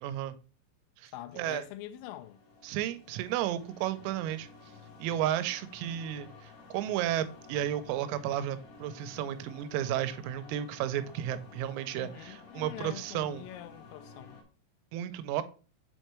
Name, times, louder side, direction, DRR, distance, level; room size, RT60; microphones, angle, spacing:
voice 1, 0.0-0.4 1.0-1.1 1.4-1.6 2.6-4.5 5.0-13.4 14.9-15.4, right 11 dB, 85° right, 3.3 m, -33 dB
voice 2, 1.1-2.4 11.9-14.4, left 13 dB, 85° left, 3.2 m, -44 dB
sound 1, 1.8-14.4, left 4 dB, 55° left, 2.8 m, -52 dB
7.6 x 4.4 x 3.0 m
omnidirectional pair, 6.0 m